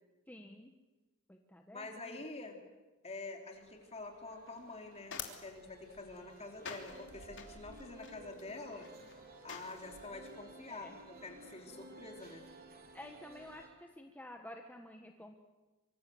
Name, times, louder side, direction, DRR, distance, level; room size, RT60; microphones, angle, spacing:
voice 1, 0.3-0.7 1.3-2.2 6.6-6.8 10.7-11.0 12.9-15.3, left 1 dB, 10° left, 3 dB, 1.4 m, -51 dB
voice 2, 1.7-2.6 3.0-8.9 9.4-12.4, left 3 dB, 30° left, 3 dB, 3.7 m, -47 dB
sound 1, 3.5-13.7, right 2 dB, 45° right, 4.0 m, -56 dB
sound 2, 4.5-10.1, left 6 dB, 60° left, 3.2 m, -49 dB
25.0 x 25.0 x 7.9 m, 1.2 s
head